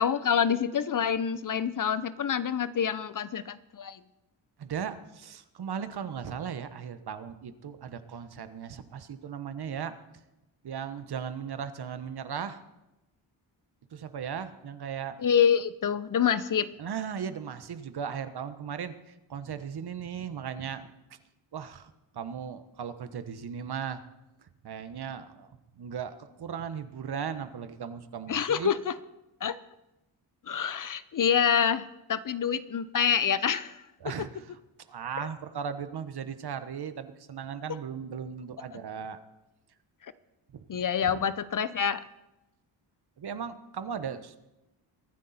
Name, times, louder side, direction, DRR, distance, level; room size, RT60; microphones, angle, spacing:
voice 1, 0.0-4.0 15.2-16.7 28.3-28.9 29.4-29.6 30.5-33.8 38.7-38.8 40.7-42.0, left 8 dB, 40° left, 15 dB, 0.7 m, -27 dB
voice 2, 4.6-10.0 10.6-12.6 13.9-15.2 16.8-18.9 19.3-21.2 21.5-24.0 24.6-28.7 34.0-34.6 34.9-39.2 40.7-41.2 43.2-44.4, right 7 dB, 55° right, 11 dB, 1.2 m, -37 dB
23.0 x 9.7 x 4.3 m, 0.96 s
cardioid pair, 65°, 47 cm